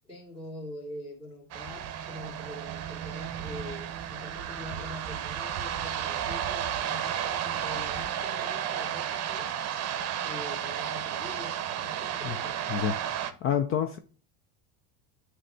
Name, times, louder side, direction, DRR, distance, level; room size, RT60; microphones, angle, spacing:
voice 1, 0.0-9.5 10.2-12.6, left 2 dB, 15° left, 2.2 m, -44 dB
sound 1, 1.5-13.3, right 9 dB, 35° right, 0.8 m, -33 dB
voice 2, 12.7-14.0, left 9 dB, 35° left, 0.4 m, -29 dB
7.5 x 3.3 x 5.5 m
supercardioid pair, 130°, 43 cm